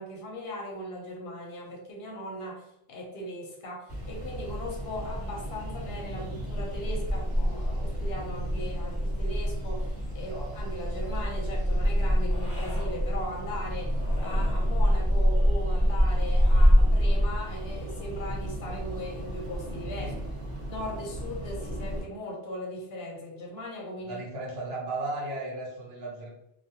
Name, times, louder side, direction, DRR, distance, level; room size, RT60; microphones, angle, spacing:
voice 1, 0.0-20.1 20.7-24.2, equal, 65° left, 0 dB, 0.8 m, -38 dB
sound 1, 3.9-22.0, equal, 5° left, 1.1 m, -27 dB
sound 2, 10.5-11.3 12.2-13.0 13.9-14.7 16.1-16.9, left 1 dB, 40° left, 0.8 m, -47 dB
voice 2, 24.0-26.3, right 2 dB, 65° right, -3 dB, 0.9 m, -35 dB
2.3 x 2.2 x 2.6 m, 0.85 s
omnidirectional pair, 1.2 m